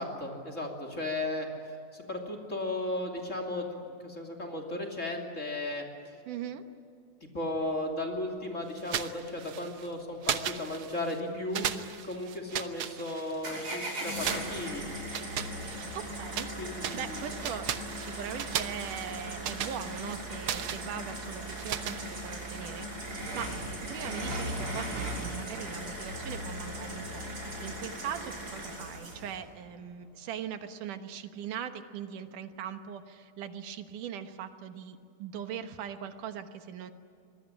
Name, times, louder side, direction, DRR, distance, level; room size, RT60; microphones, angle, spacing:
voice 1, 0.0-1.5 1.9-5.8 7.3-11.7 12.0-14.8 16.6-17.2, left 1 dB, 25° left, 4 dB, 2.9 m, -35 dB
voice 2, 6.3-6.6 15.9-16.5 16.9-17.7 17.9-23.5 23.9-36.9, right 9 dB, 85° right, 8 dB, 2.8 m, -40 dB
sound 1, 8.8-9.9 10.2-11.2 11.5-13.6 14.2-16.5 16.8-22.6, right 9 dB, 65° right, 1.4 m, -37 dB
sound 2, 13.4-29.4, right 1 dB, 40° right, 6.5 m, -38 dB
25.5 x 21.0 x 10.0 m, 2.5 s
omnidirectional pair, 3.6 m